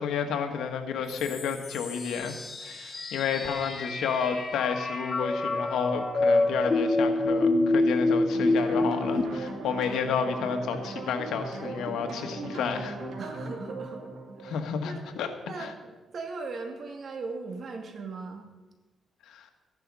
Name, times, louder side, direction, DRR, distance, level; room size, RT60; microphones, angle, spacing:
voice 1, 0.0-12.9 14.4-15.3 15.6-15.7 19.3-19.5, left 6 dB, 90° left, 6 dB, 1.6 m, -31 dB
sound 1, 1.1-9.2, left 2 dB, 30° left, 2.3 m, -27 dB
sound 2, 8.3-15.3, right 2 dB, 80° right, 3.0 m, -38 dB
voice 2, 13.2-14.0 14.4-15.1 15.5-18.4, right 3 dB, 50° right, 3 dB, 2.4 m, -39 dB
15.0 x 11.0 x 5.5 m, 1.2 s
cardioid pair, 115°, 0 cm